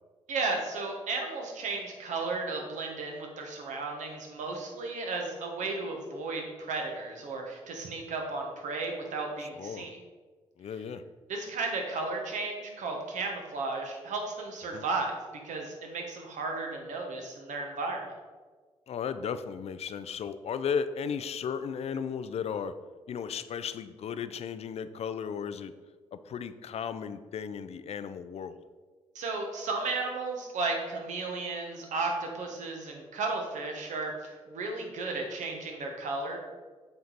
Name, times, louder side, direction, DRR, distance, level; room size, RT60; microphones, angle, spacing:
voice 1, 0.3-10.0 11.3-15.2 15.4-18.0 29.1-36.4, right 3 dB, 65° right, 1 dB, 1.3 m, -34 dB
voice 2, 9.5-9.9 10.6-11.0 14.7-14.8 18.9-22.7 23.1-25.7 26.1-28.6, left 7 dB, 50° left, 12 dB, 0.5 m, -35 dB
7.5 x 4.5 x 4.0 m, 1.4 s
hypercardioid pair, 40°, 14 cm